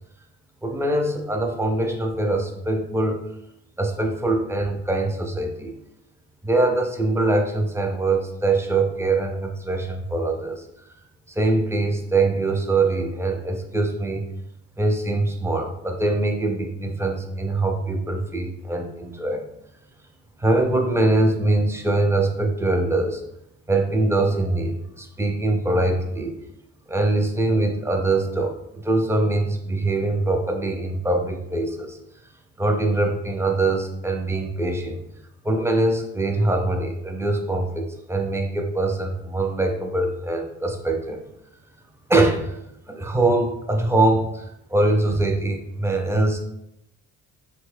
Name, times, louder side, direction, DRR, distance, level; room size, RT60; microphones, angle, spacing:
voice 1, 0.6-3.2 3.8-5.7 6.4-10.6 11.4-14.2 14.8-19.4 20.4-23.2 23.7-26.4 26.9-28.6 28.8-32.0 32.6-35.0 35.4-41.2 42.1-42.6 42.9-46.4, right 2 dB, 10° right, 4 dB, 0.4 m, -23 dB
3.4 x 2.3 x 3.2 m, 0.80 s
cardioid pair, 90°, 30 cm